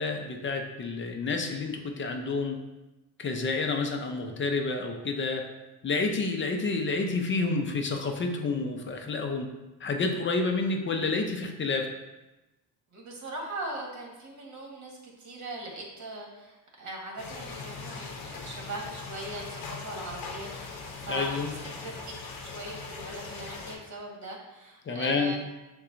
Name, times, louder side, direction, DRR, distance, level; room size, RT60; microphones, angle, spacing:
voice 1, 0.0-2.6 3.2-5.4 5.8-9.5 9.8-11.9 21.1-21.5 24.9-25.4, left 3 dB, 30° left, 4 dB, 0.5 m, -29 dB
voice 2, 12.9-22.1 22.4-25.4, right 2 dB, 45° right, -1 dB, 1.4 m, -40 dB
Ambience Rain Moderate B, 17.2-23.8, left 4 dB, 55° left, 0.8 m, -40 dB
6.5 x 2.3 x 2.5 m, 1.0 s
supercardioid pair, 80°, 42 cm